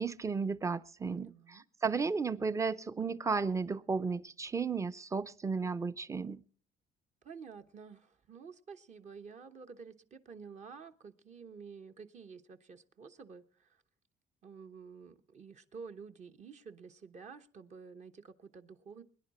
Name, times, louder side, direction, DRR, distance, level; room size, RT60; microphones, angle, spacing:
voice 1, 0.0-6.4, right 5 dB, 20° right, 15 dB, 0.6 m, -34 dB
voice 2, 1.0-1.6 7.2-13.8 14.4-19.0, right 5 dB, 45° right, 7 dB, 1.0 m, -50 dB
23.0 x 10.5 x 4.2 m, 0.41 s
cardioid pair, 110°, 17 cm